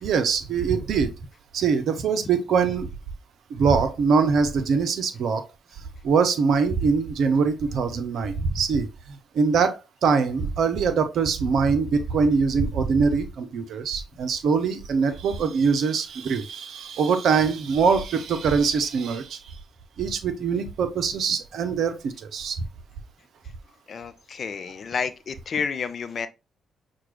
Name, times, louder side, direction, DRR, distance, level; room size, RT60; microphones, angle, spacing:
voice 1, 0.0-1.1 1.5-2.9 3.5-5.4 6.0-9.8 10.0-19.6 20.0-22.6, right 5 dB, 60° right, 0.6 m, -23 dB
voice 2, 23.9-26.3, left 6 dB, 50° left, 0.4 m, -30 dB
5.8 x 2.3 x 3.1 m
figure-of-eight pair, 40°, 0 cm